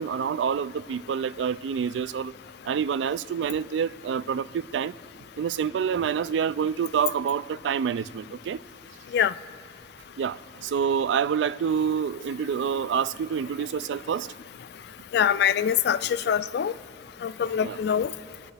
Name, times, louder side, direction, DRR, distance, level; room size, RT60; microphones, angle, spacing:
voice 1, 0.0-2.3 2.7-4.9 5.4-8.6 10.2-14.3 17.6-17.8, right 7 dB, 80° right, 0.3 m, -27 dB
voice 2, 15.1-16.7 17.2-18.1, left 8 dB, 65° left, 0.3 m, -24 dB
22.5 x 9.8 x 3.4 m
head